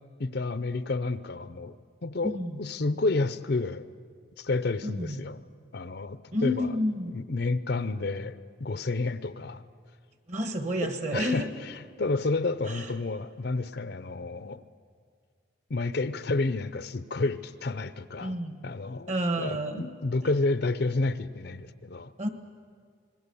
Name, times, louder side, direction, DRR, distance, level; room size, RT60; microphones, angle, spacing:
voice 1, 0.2-1.8 2.0-3.9 4.4-5.4 5.7-6.8 7.1-9.6 10.8-14.6 15.7-18.4 18.6-19.1 19.4-22.1, left 3 dB, 55° left, 14 dB, 0.6 m, -30 dB
voice 2, 2.2-2.7 4.8-5.3 6.3-7.1 10.3-11.5 12.6-12.9 18.2-18.6 19.1-19.9 22.2-22.3, equal, 35° right, 7 dB, 1.4 m, -30 dB
26.0 x 20.5 x 7.0 m, 2.1 s
head